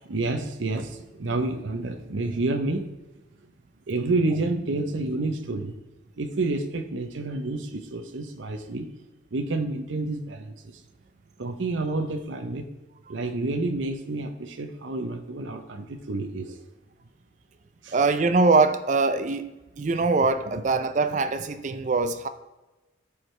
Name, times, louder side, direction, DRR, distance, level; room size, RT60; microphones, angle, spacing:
voice 1, 0.1-2.9 3.9-5.7 6.2-8.9 9.3-10.5 11.4-12.7 13.1-16.6 17.8-18.0 20.5-20.6, right 2 dB, 80° right, 0.8 m, -29 dB
voice 2, 17.9-19.5 19.8-22.3, right 3 dB, 40° right, 0.4 m, -22 dB
13.5 x 4.9 x 3.2 m
head